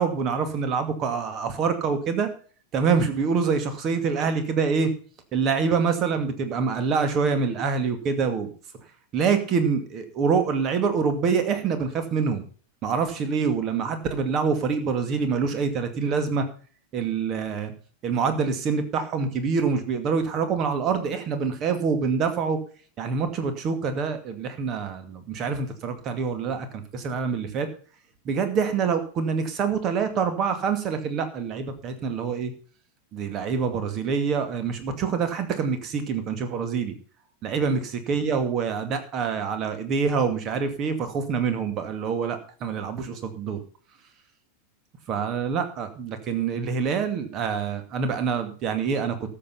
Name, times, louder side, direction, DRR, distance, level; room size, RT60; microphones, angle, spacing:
voice 1, 0.0-2.3 2.7-4.9 5.3-8.5 9.1-12.4 12.8-16.4 16.9-17.7 18.0-22.6 23.0-27.7 28.3-32.5 33.1-36.9 37.4-37.8 38.1-43.6 45.1-49.2, right 5 dB, 35° right, 8 dB, 2.3 m, -26 dB
13.5 x 7.7 x 5.7 m, 0.42 s
figure-of-eight pair, 90°, 0 cm